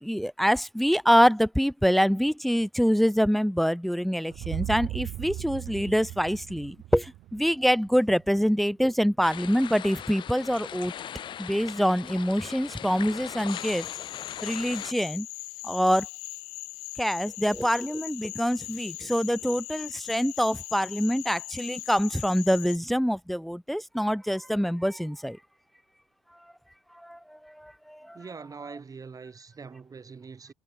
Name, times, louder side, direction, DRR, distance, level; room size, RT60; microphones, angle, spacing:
voice 1, 0.0-10.9 11.4-13.9 14.4-15.3 15.6-16.1 17.0-25.4 27.0-28.2, equal, ahead, 0.5 m, -25 dB
sound 1, 4.3-8.4, right 16 dB, 55° right, 0.6 m, -37 dB
sound 2, 9.2-14.9, left 10 dB, 45° left, 0.7 m, -39 dB
Cricket / Frog, 13.5-22.8, left 26 dB, 65° left, 1.2 m, -40 dB
voice 2, 28.0-30.5, right 5 dB, 30° right, 2.4 m, -43 dB
figure-of-eight pair, 50°, 12 cm